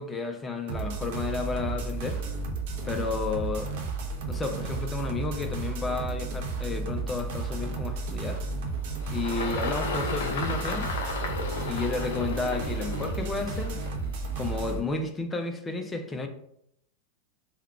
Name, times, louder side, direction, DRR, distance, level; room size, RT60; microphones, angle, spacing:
voice 1, 0.0-2.2 2.9-3.7 4.3-8.4 9.1-10.9 11.6-13.8 14.4-16.3, left 3 dB, 15° left, 5 dB, 0.4 m, -32 dB
sound 1, 0.7-14.8, right 3 dB, 50° right, 0.6 m, -33 dB
Engine, 8.3-14.9, left 3 dB, 60° left, 0.6 m, -35 dB
3.6 x 2.2 x 4.2 m, 0.72 s
figure-of-eight pair, 90°, 0 cm